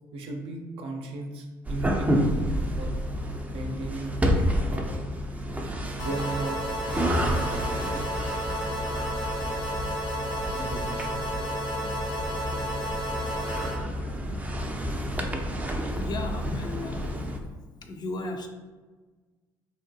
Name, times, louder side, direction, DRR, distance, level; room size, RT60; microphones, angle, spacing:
voice 1, 0.1-2.9 3.5-4.1 4.7-4.9 6.0-6.6 6.9-7.8 10.5-11.2, right 3 dB, 65° right, 2 dB, 0.5 m, -36 dB
sound 1, 1.6-17.4, equal, 15° right, 0.4 m, -30 dB
sound 2, 6.0-13.8, equal, 80° left, 0.9 m, -32 dB
voice 2, 15.9-17.2 17.8-18.5, left 2 dB, 45° left, 4 dB, 0.4 m, -34 dB
2.7 x 2.2 x 2.7 m, 1.3 s
hypercardioid pair, 60°, 10 cm